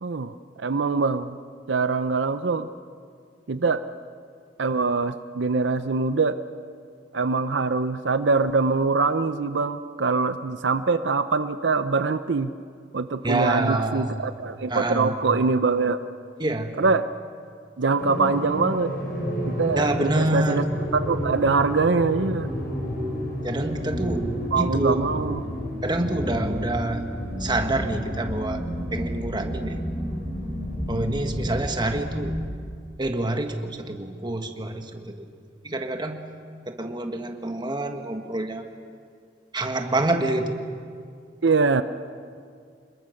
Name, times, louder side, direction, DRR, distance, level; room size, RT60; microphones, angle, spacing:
voice 1, 0.0-1.4 1.7-2.7 3.5-3.8 4.6-6.4 7.1-12.5 12.9-16.0 16.8-17.0 17.8-18.9 19.4-20.6 20.9-22.5 24.5-25.4 41.4-41.8, right 4 dB, 80° right, 11 dB, 0.7 m, -23 dB
voice 2, 13.2-14.3 14.7-15.3 16.4-16.7 19.8-20.6 23.4-24.3 24.6-25.0 25.8-27.1 27.4-28.6 28.9-29.8 30.9-32.4 33.0-35.3 35.6-36.2 36.7-38.7 39.5-40.6, right 2 dB, 25° right, 5 dB, 1.5 m, -27 dB
sound 1, 18.0-32.4, equal, 60° left, 6.1 m, -30 dB
27.0 x 21.5 x 6.5 m, 2.2 s
head